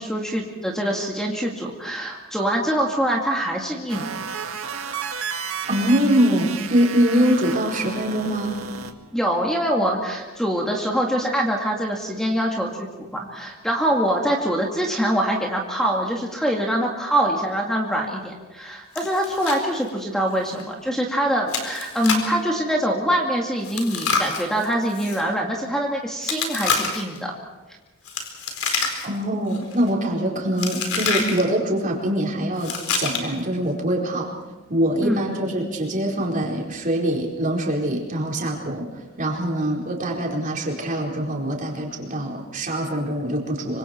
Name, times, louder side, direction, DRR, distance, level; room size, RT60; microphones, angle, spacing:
voice 1, 0.0-4.1 9.1-27.3 35.0-35.2, right 1 dB, 5° left, -1 dB, 2.3 m, -24 dB
sound 1, 3.9-8.9, right 6 dB, 75° right, 1.9 m, -32 dB
voice 2, 5.7-8.6 29.0-34.3 34.7-38.9 39.2-43.8, right 1 dB, 40° right, -2 dB, 4.6 m, -23 dB
Chewing mastication, 19.0-19.6 19.9-20.0 20.5-20.6 21.5-22.4 23.6-25.2 26.2-27.2 28.1-29.2 29.5-29.9 30.6-31.4 32.6-33.4, left 5 dB, 85° left, 4.3 m, -27 dB
26.0 x 25.5 x 4.5 m, 1.2 s
head